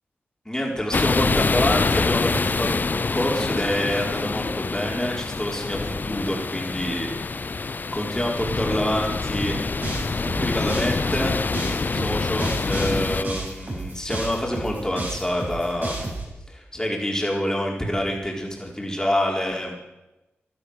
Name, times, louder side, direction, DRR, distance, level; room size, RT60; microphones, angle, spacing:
voice 1, 0.4-9.6 10.4-16.1 16.5-19.8, left 1 dB, 15° left, -1 dB, 4.6 m, -27 dB
sound 1, 0.9-13.2, left 4 dB, 45° left, 0.4 m, -26 dB
sound 2, 9.4-16.2, right 2 dB, 50° right, 6.8 m, -32 dB
15.5 x 12.0 x 6.6 m, 1.0 s
cardioid pair, 45°, 4 cm